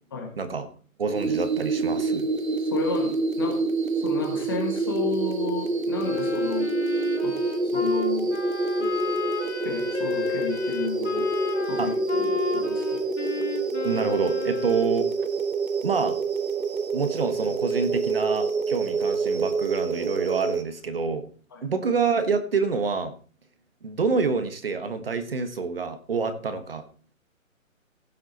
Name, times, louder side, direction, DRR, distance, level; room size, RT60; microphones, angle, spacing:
voice 1, 0.4-0.7 1.0-2.3 11.8-11.9 13.8-15.1 15.8-16.1 16.9-21.3 21.6-23.1 23.8-26.8, right 4 dB, 45° right, 9 dB, 1.4 m, -27 dB
sound 1, 1.1-20.6, right 4 dB, 75° right, 1.7 m, -27 dB
voice 2, 2.6-3.1 3.4-3.6 4.0-6.7 7.2-7.4 7.6-8.3 8.8-8.9 9.6-11.2 11.7-13.0 21.5-21.6, left 4 dB, 15° left, 3 dB, 1.4 m, -32 dB
Wind instrument woodwind instrument, 6.0-14.9, left 6 dB, 50° left, 3.2 m, -32 dB
16.5 x 7.5 x 3.9 m, 0.39 s
hypercardioid pair, 170°, 42 cm